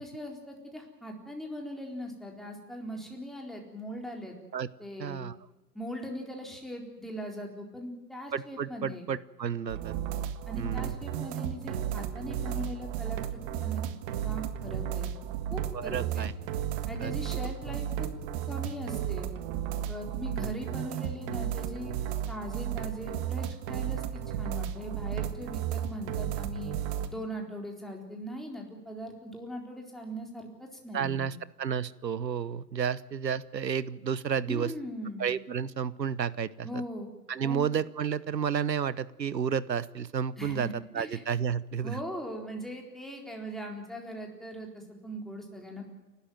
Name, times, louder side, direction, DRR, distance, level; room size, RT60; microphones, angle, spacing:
voice 1, 0.0-4.4 4.8-5.2 5.7-9.1 10.5-13.8 14.2-15.2 15.5-16.3 16.9-18.1 18.5-19.3 19.9-21.9 22.3-26.7 27.1-31.3 34.5-35.3 36.6-37.1 37.4-37.7 40.4-41.2 41.8-45.9, equal, ahead, 1 dB, 4.0 m, -40 dB
voice 2, 5.0-5.3 8.3-10.0 10.6-11.0 15.7-16.3 17.0-17.1 17.7-17.8 30.9-34.7 35.2-36.8 37.3-42.0, right 7 dB, 85° right, 19 dB, 1.1 m, -31 dB
sound 1, 9.7-27.1, right 10 dB, 35° right, 1.7 m, -34 dB
29.0 x 13.0 x 9.2 m, 1.1 s
hypercardioid pair, 125°, 49 cm